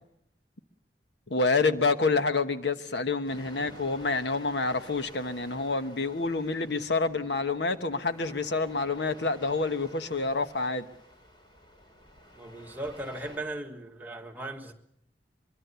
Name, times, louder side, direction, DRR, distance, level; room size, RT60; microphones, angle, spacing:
voice 1, 1.3-10.9, left 3 dB, 80° left, 1.2 m, -28 dB
sound 1, 3.2-13.4, equal, 25° left, 3.8 m, -51 dB
voice 2, 12.4-14.7, right 2 dB, 10° right, 1.6 m, -37 dB
24.0 x 23.0 x 7.0 m
head